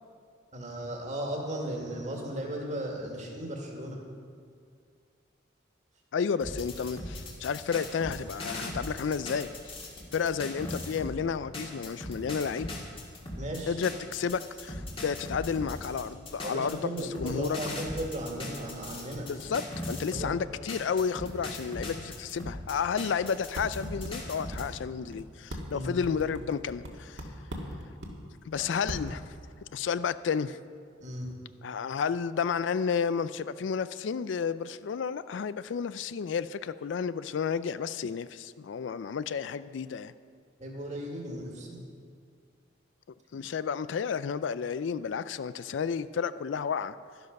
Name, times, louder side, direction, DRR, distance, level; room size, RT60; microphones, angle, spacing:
voice 1, 0.5-4.0 13.4-13.8 16.4-19.3 20.0-20.3 25.7-25.9 28.6-28.7 31.0-31.3 40.6-41.8, right 1 dB, 40° right, 0 dB, 2.0 m, -36 dB
voice 2, 6.1-9.7 10.1-12.8 13.7-17.6 19.2-27.2 28.5-29.2 29.7-30.6 31.6-40.1 43.3-47.0, left 6 dB, 75° left, 15 dB, 0.4 m, -31 dB
sound 1, 6.4-11.2 11.5-20.3 20.7-24.6, left 1 dB, 30° left, 1.9 m, -39 dB
sound 2, 23.2-23.3 23.5-24.1 24.5-24.6 25.1-25.2 25.5-26.9 27.2-28.1 28.5-28.6 28.9-29.1, equal, 70° right, 1.8 m, -38 dB
12.0 x 12.0 x 5.3 m, 2.2 s
head